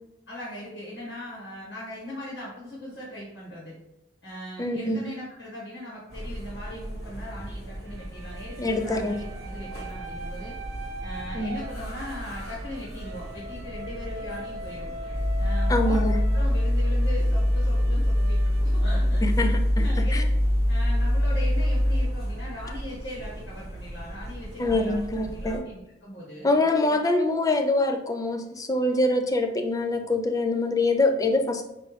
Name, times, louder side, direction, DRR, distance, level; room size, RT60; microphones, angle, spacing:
voice 1, 0.3-3.7 4.2-10.6 11.0-14.9 15.4-16.0 16.3-20.3 20.7-25.0 25.3-26.5, left 1 dB, 80° left, -6 dB, 1.5 m, -39 dB
voice 2, 4.6-5.0 8.6-9.1 11.3-11.5 15.7-16.1 19.2-19.8 20.1-20.2 24.6-25.7 26.4-31.6, left 2 dB, 20° left, 5 dB, 0.4 m, -24 dB
sound 1, 6.1-25.6, right 1 dB, 60° left, 1.4 m, -38 dB
sound 2, 7.8-19.6, right 1 dB, 85° right, 0.5 m, -42 dB
sound 3, 15.1-22.1, left 1 dB, 15° right, 1.0 m, -23 dB
5.5 x 2.6 x 3.2 m, 0.90 s
head